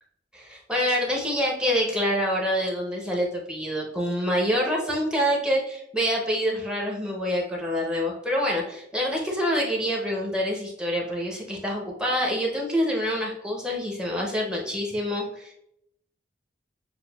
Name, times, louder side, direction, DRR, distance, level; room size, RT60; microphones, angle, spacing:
voice 1, 0.3-15.5, equal, 5° right, -1 dB, 0.7 m, -26 dB
6.6 x 2.2 x 2.3 m, 0.77 s
head